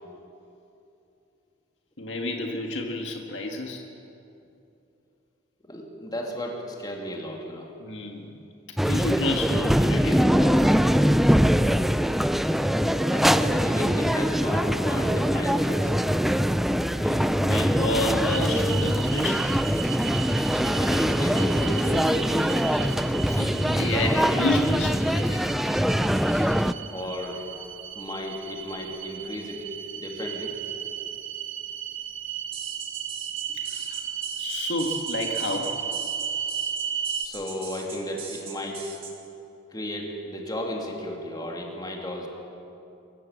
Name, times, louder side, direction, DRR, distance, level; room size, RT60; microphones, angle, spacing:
voice 1, 2.0-3.8 7.8-8.3 8.8-10.9 16.9-19.6 23.3-25.5 33.5-34.0 34.4-35.8, left 2 dB, 65° left, 2 dB, 1.9 m, -30 dB
voice 2, 5.6-7.7 11.1-11.2 12.8-15.9 20.6-22.9 26.7-27.5 28.0-29.7 29.9-30.6 37.2-38.9 39.7-42.3, equal, 20° left, 0 dB, 2.7 m, -34 dB
sound 1, 8.8-26.7, equal, ahead, 0.4 m, -23 dB
sound 2, 18.3-37.2, right 8 dB, 80° right, 1.1 m, -35 dB
sound 3, 32.5-39.1, right 6 dB, 30° right, 2.5 m, -40 dB
25.5 x 15.0 x 7.4 m, 2.8 s
head